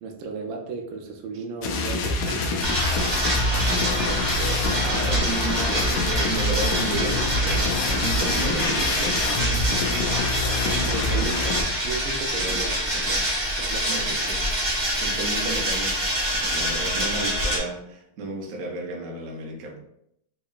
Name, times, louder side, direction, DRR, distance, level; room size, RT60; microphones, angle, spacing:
voice 1, 0.0-2.2 7.1-7.2 10.6-13.2 13.6-14.1 16.9-17.5, right 4 dB, 80° right, 3 dB, 1.3 m, -35 dB
sound 1, 1.6-11.6, left 2 dB, 75° left, 0.9 m, -26 dB
voice 2, 2.2-9.8 12.4-12.6 12.9-13.3 13.9-16.0 16.3-19.8, right 2 dB, 60° right, 1 dB, 0.9 m, -34 dB
sound 2, 2.6-17.6, equal, 35° right, 0.8 m, -26 dB
3.7 x 2.9 x 2.4 m, 0.76 s
omnidirectional pair, 2.1 m